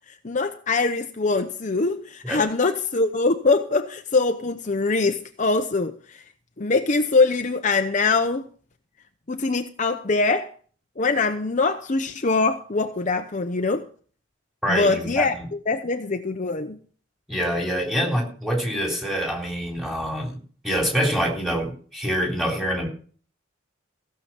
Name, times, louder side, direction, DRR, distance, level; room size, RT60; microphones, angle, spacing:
voice 1, 0.2-6.2 6.6-8.5 9.3-10.5 11.0-13.8 14.7-15.3 15.7-16.8, left 3 dB, 40° left, 0.8 m, -23 dB
voice 2, 14.6-15.4 17.3-20.4 20.6-22.9, equal, ahead, 3.5 m, -25 dB
16.0 x 6.9 x 5.9 m
head